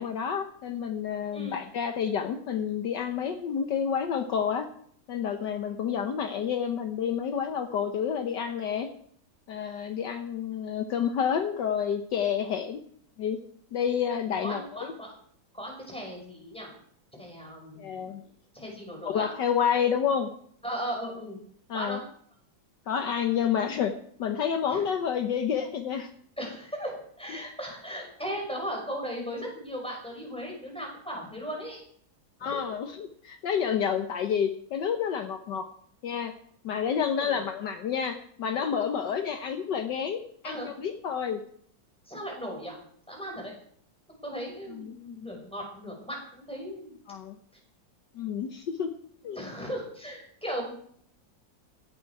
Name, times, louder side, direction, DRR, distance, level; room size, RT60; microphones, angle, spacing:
voice 1, 0.0-4.7 5.1-8.9 9.5-12.8 13.2-13.4 13.7-14.9 17.8-18.2 19.0-20.3 21.7-22.0 22.9-23.9 24.2-26.1 32.4-35.7 36.0-36.3 36.6-41.4 44.7-45.0 47.1-47.4 48.1-48.9 49.2-49.4, left 7 dB, 65° left, 7 dB, 1.6 m, -29 dB
voice 2, 14.4-15.1 15.5-16.7 17.2-18.1 18.5-19.3 20.6-21.4 21.7-22.0 24.7-24.8 26.4-31.8 32.4-32.6 37.2-37.4 40.4-40.7 42.1-42.8 43.1-43.5 44.2-46.9 49.3-50.7, equal, 5° left, 0 dB, 5.4 m, -37 dB
16.0 x 12.0 x 4.8 m, 0.62 s
omnidirectional pair, 2.1 m